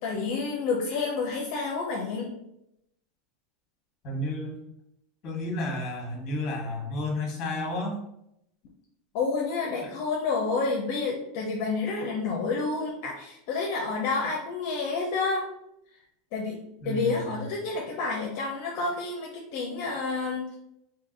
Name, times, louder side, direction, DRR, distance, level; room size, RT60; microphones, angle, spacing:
voice 1, 0.0-2.3 9.1-15.5 16.3-16.6 16.8-20.6, left 4 dB, 55° left, -1 dB, 0.6 m, -29 dB
voice 2, 4.0-4.6 5.2-8.0 9.8-9.9 16.8-17.4, left 1 dB, 35° left, -1 dB, 1.2 m, -32 dB
2.8 x 2.6 x 3.8 m, 0.80 s
supercardioid pair, 150°, 0 cm